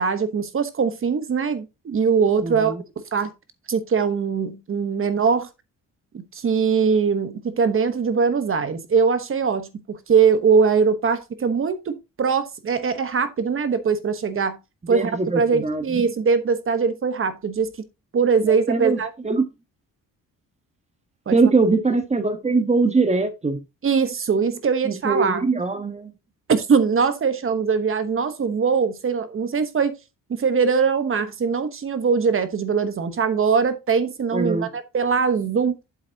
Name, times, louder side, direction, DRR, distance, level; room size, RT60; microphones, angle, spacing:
voice 1, 0.0-2.7 3.1-3.3 3.7-5.5 6.1-14.6 14.9-17.7 18.1-19.1 21.3-21.4 23.8-25.4 26.5-29.9 30.3-35.8, right 5 dB, 40° right, 1.2 m, -21 dB
voice 2, 2.4-2.8 14.9-16.0 18.4-19.4 21.3-23.6 24.8-26.1 34.3-34.7, right 3 dB, 20° right, 1.3 m, -22 dB
8.1 x 7.3 x 2.9 m
cardioid pair, 125°, 33 cm